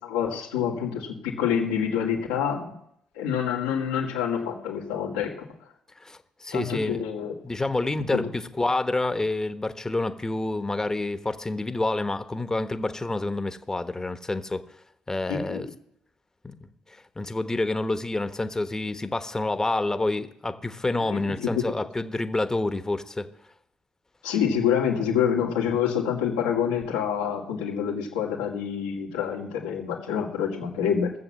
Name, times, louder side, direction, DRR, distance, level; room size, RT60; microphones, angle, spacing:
voice 1, 0.0-2.7 3.1-5.4 6.5-7.3 8.1-8.3 15.3-15.6 21.0-21.7 24.2-31.1, left 8 dB, 90° left, -1 dB, 2.2 m, -27 dB
voice 2, 6.0-7.0 7.4-14.6 15.1-15.7 16.4-23.3, left 2 dB, 20° left, 10 dB, 1.2 m, -28 dB
16.0 x 7.2 x 7.5 m, 0.73 s
hypercardioid pair, 55°, 3 cm